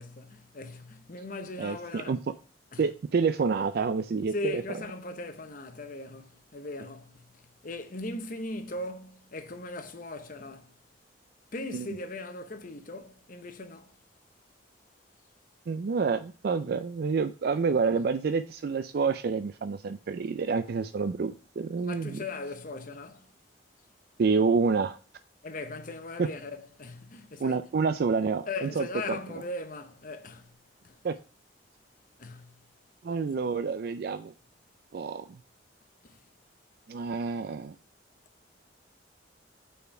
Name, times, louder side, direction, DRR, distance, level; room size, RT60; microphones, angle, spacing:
voice 1, 0.0-2.2 2.7-2.8 4.3-7.2 7.6-10.7 11.5-13.9 21.8-23.3 25.4-27.6 28.5-30.5 30.8-31.0 32.2-32.5 36.0-36.2, left 2 dB, 45° left, 0.8 m, -39 dB
voice 2, 1.6-2.2 2.8-4.6 11.7-11.9 15.7-22.2 24.2-25.0 26.2-26.3 27.4-29.2 31.0-31.1 33.0-34.3 34.9-35.4 36.9-37.8, right 5 dB, 55° right, 0.4 m, -28 dB
5.5 x 4.3 x 4.4 m
head